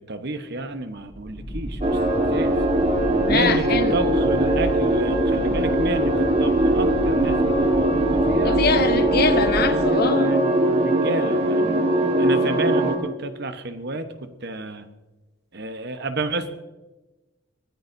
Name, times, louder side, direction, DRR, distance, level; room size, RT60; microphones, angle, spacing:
voice 1, 0.1-1.8 2.3-2.6 3.3-3.6 3.9-8.6 9.6-11.9 12.2-14.1 14.4-14.8 15.5-16.5, right 2 dB, 60° right, 8 dB, 1.1 m, -30 dB
sound 1, 0.8-10.3, equal, 5° left, 5.4 m, -32 dB
sound 2, 1.8-13.0, right 1 dB, 30° right, 1.5 m, -21 dB
voice 2, 3.1-4.0 8.4-10.4, left 4 dB, 55° left, 9 dB, 1.0 m, -23 dB
22.0 x 14.5 x 2.7 m, 1.1 s
head